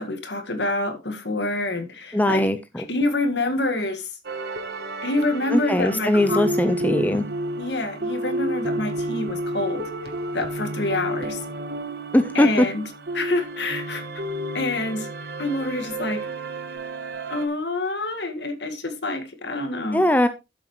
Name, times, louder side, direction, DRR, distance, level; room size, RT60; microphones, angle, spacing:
voice 1, 0.0-2.5 2.8-4.1 5.0-6.5 7.6-9.9 10.3-11.4 12.3-12.8 13.1-14.0 14.5-15.1 15.4-16.2 17.3-20.0, left 2 dB, 65° left, 1.9 m, -27 dB
voice 2, 2.1-2.8 5.5-7.3 12.1-12.7 19.9-20.3, left 1 dB, 10° left, 0.6 m, -20 dB
sound 1, 4.2-17.5, right 1 dB, 55° right, 1.2 m, -31 dB
12.0 x 7.4 x 3.2 m
head